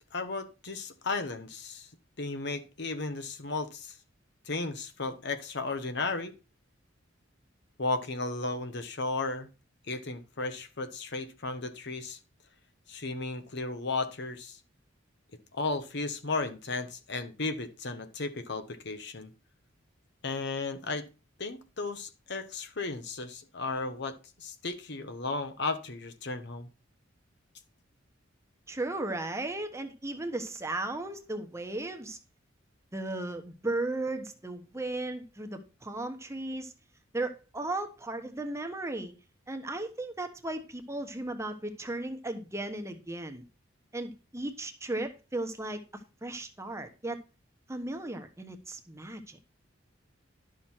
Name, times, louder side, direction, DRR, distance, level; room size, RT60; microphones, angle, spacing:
voice 1, 0.1-1.9 2.2-3.9 4.5-6.3 7.8-9.5 9.9-12.2 12.9-14.6 15.5-19.3 20.2-21.1 21.4-26.7, left 3 dB, 60° left, 1.2 m, -34 dB
voice 2, 28.7-32.2 32.9-36.7 37.1-39.1 39.5-43.4 43.9-45.8 46.2-47.2 47.7-49.4, right 2 dB, 15° right, 1.0 m, -35 dB
11.5 x 6.4 x 4.4 m
head